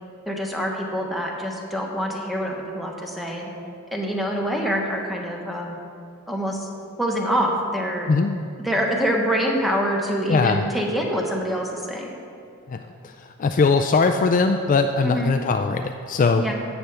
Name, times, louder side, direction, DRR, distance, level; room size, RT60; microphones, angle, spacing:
voice 1, 0.3-3.5 3.9-5.8 6.3-6.7 7.0-8.1 8.6-12.2 15.0-15.3 16.4-16.5, equal, ahead, -1 dB, 1.1 m, -25 dB
voice 2, 8.1-8.4 10.3-10.6 12.7-13.1 13.4-16.5, left 4 dB, 35° left, 6 dB, 0.3 m, -20 dB
16.5 x 6.9 x 3.4 m, 2.4 s
head